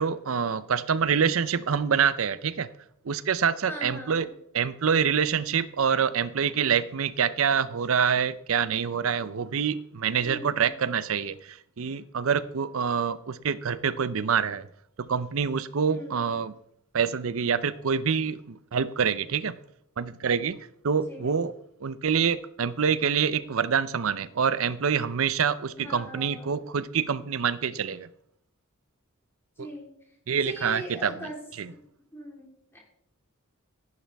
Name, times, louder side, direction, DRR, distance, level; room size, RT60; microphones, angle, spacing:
voice 1, 0.0-2.7 3.0-4.3 4.5-14.7 15.0-16.5 16.9-19.6 20.0-20.6 20.8-21.5 21.8-28.1 29.6-29.7 30.3-31.3 31.6-31.7, right 6 dB, 70° right, 0.6 m, -26 dB
voice 2, 3.7-4.3 10.2-10.7 15.9-16.3 21.1-21.3 25.8-26.5 29.6-29.9 30.4-31.4 32.1-32.8, equal, 10° left, 3.6 m, -40 dB
14.0 x 10.5 x 3.5 m
head